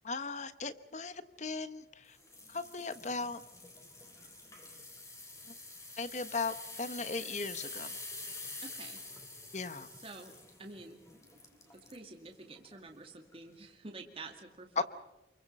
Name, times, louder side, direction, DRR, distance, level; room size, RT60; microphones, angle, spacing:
voice 1, 0.0-2.2 2.5-3.4 6.0-8.0 9.5-9.9 14.8-14.9, left 4 dB, 40° left, 12 dB, 1.1 m, -37 dB
sound 1, 2.1-12.0 12.5-12.8 13.3-13.4, left 2 dB, 15° left, 3.5 m, -47 dB
voice 2, 8.6-9.0 9.4-9.5 10.0-10.3 10.6-11.0 11.7-14.8, right 3 dB, 30° right, 2 dB, 2.1 m, -49 dB
29.0 x 23.0 x 5.5 m, 0.94 s
head